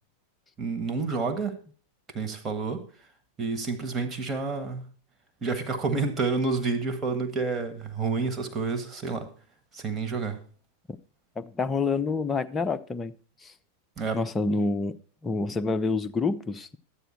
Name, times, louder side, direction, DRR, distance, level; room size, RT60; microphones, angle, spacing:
voice 1, 0.6-1.6 2.1-2.8 3.4-4.8 5.4-9.3 9.7-10.4 14.0-14.2, right 4 dB, 20° right, 1.8 m, -29 dB
voice 2, 11.4-13.1 13.4-13.5 14.1-15.0 15.2-16.8, left 4 dB, 15° left, 0.7 m, -27 dB
12.0 x 9.0 x 4.4 m
figure-of-eight pair, 90°, 0 cm